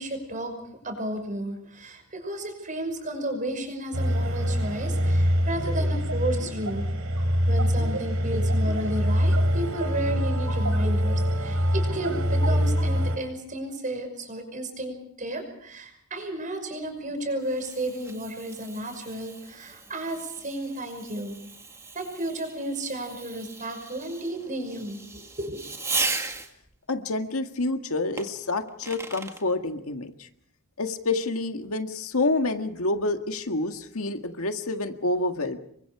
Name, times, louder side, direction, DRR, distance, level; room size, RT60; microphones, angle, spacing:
voice 1, 0.0-6.9 7.5-21.4 21.9-25.6, right 1 dB, 35° right, 6 dB, 5.8 m, -33 dB
sound 1, 3.9-13.2, equal, 70° right, 3.6 m, -24 dB
Fireworks, 16.8-26.7 28.2-29.4, right 3 dB, 15° right, 2.0 m, -37 dB
voice 2, 26.9-30.3 30.8-35.6, left 2 dB, 75° left, 6 dB, 1.8 m, -28 dB
28.5 x 23.5 x 4.9 m, 0.70 s
head